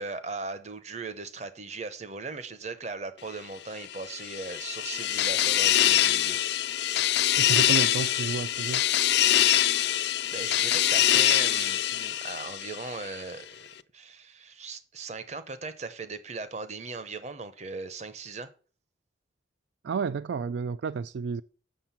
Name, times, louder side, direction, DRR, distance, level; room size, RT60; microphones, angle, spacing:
voice 1, 0.0-6.4 10.3-13.7 13.9-18.5, right 3 dB, 35° right, 0.8 m, -38 dB
sound 1, 3.9-13.1, left 12 dB, 60° left, 0.4 m, -24 dB
voice 2, 7.4-8.9 19.8-21.4, right 5 dB, 70° right, 0.3 m, -31 dB
7.5 x 6.6 x 5.7 m
head